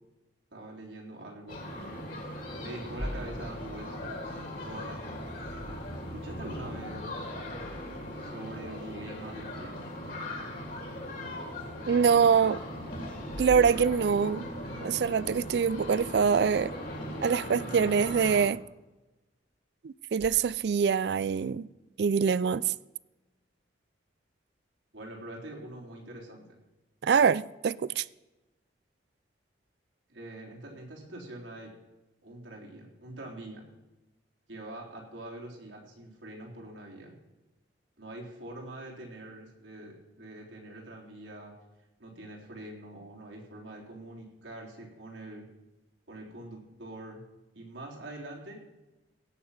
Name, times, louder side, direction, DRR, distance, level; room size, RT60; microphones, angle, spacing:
voice 1, 0.5-2.1 2.6-4.1 4.6-5.3 6.1-7.3 8.2-9.8 24.9-26.4 30.1-31.7 32.2-33.6 34.5-37.1 38.0-41.5 42.0-45.4 46.1-47.2 47.5-48.6, right 1 dB, 85° right, 3.7 m, -44 dB
sound 1, 1.5-18.4, left 1 dB, 50° left, 2.6 m, -39 dB
sound 2, 2.8-6.4 10.8-10.9 11.8-11.9 13.2-14.5 20.1-20.3, equal, 5° right, 1.2 m, -43 dB
voice 2, 11.9-12.6 13.4-14.5 14.8-16.8 17.2-18.6 19.8-21.7 22.0-22.7 27.0-28.0, right 6 dB, 60° right, 0.3 m, -24 dB
17.0 x 6.6 x 5.8 m
head